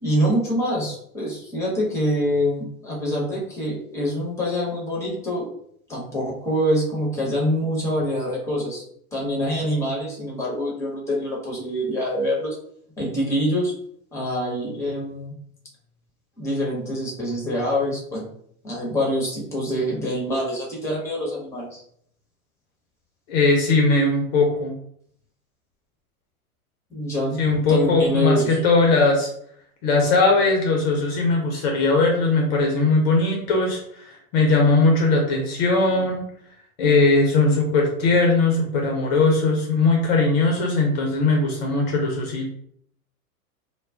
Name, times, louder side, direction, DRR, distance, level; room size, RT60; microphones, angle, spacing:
voice 1, 0.0-5.5 5.9-8.8 9.1-12.6 13.0-13.7 14.1-15.3 16.4-18.3 18.6-21.8 26.9-27.4 27.7-28.6, equal, 5° left, -3 dB, 0.9 m, -25 dB
voice 2, 23.3-24.7 27.4-29.3 29.8-33.8 34.3-36.2 36.8-42.5, left 3 dB, 45° left, 0 dB, 0.7 m, -19 dB
2.3 x 2.1 x 3.5 m, 0.68 s
hypercardioid pair, 105°, 44 cm